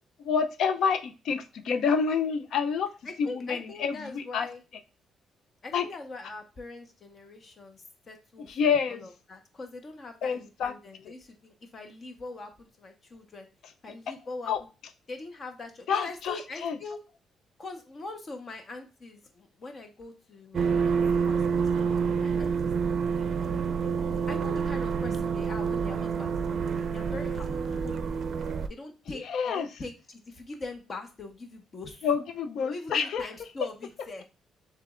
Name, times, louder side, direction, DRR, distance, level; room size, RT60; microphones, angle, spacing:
voice 1, 0.2-2.9 3.2-4.5 5.7-5.8 8.5-9.0 10.2-10.7 11.0-11.1 14.5-14.6 15.9-16.8 29.1-29.7 32.0-33.3, left 6 dB, 70° left, 9 dB, 0.5 m, -28 dB
voice 2, 3.0-4.6 5.6-13.5 13.8-14.5 15.1-17.0 17.6-22.5 23.1-23.9 24.3-28.3 28.7-32.1 32.6-34.2, left 3 dB, 40° left, 5 dB, 1.1 m, -42 dB
sound 1, 20.5-28.7, right 6 dB, 55° right, 0.4 m, -28 dB
6.6 x 3.3 x 2.4 m, 0.30 s
cardioid pair, 90°, 0 cm